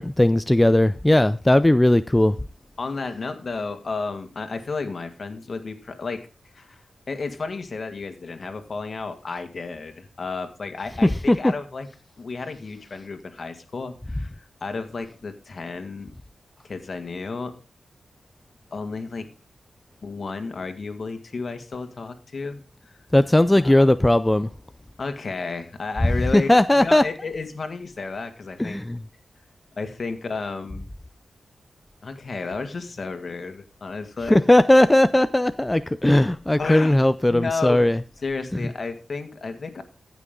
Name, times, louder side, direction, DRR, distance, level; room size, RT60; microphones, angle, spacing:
voice 1, 0.0-2.4 11.0-11.4 23.1-24.5 26.3-27.1 28.6-29.0 34.3-38.0, left 1 dB, 15° left, 0.5 m, -18 dB
voice 2, 2.8-6.3 6.5-6.8 7.1-11.9 12.2-16.1 16.6-17.5 18.7-19.3 20.0-23.0 23.5-23.9 25.0-26.5 26.7-28.8 29.8-30.9 32.0-34.4 36.6-37.0 37.3-37.9 38.2-39.8, left 4 dB, 55° left, 1.8 m, -32 dB
15.0 x 6.1 x 3.8 m
cardioid pair, 55°, 0 cm